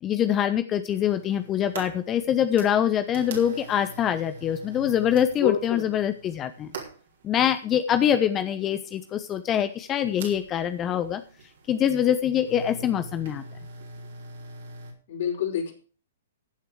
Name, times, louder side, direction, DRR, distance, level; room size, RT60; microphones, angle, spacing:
voice 1, 0.0-6.7 7.2-11.2 11.7-13.4, left 9 dB, 25° left, 10 dB, 1.0 m, -24 dB
sound 1, 0.9-14.9, right 3 dB, 60° right, 4.4 m, -43 dB
voice 2, 5.4-5.8 15.1-15.7, left 9 dB, 55° left, 1 dB, 6.0 m, -27 dB
15.5 x 8.2 x 4.8 m, 0.38 s
figure-of-eight pair, 120°, 0 cm